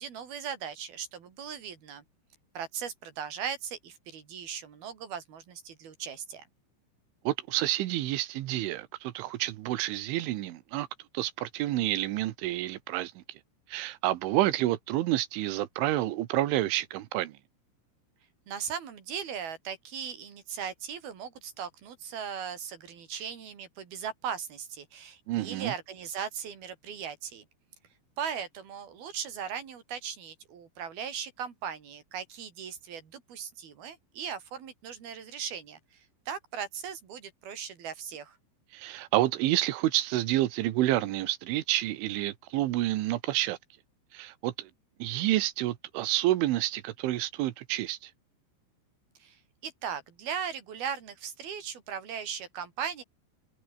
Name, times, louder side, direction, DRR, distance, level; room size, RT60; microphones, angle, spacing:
voice 1, 0.0-2.0 2.5-6.4 18.5-27.4 28.2-38.4 49.2-53.0, right 7 dB, 55° right, 4.9 m, -38 dB
voice 2, 7.3-10.9 11.1-13.2 13.7-17.4 23.1-23.2 25.3-25.7 38.7-43.6 44.1-44.7 45.0-48.1, right 15 dB, 80° right, 3.6 m, -29 dB
omnidirectional pair, 5.5 m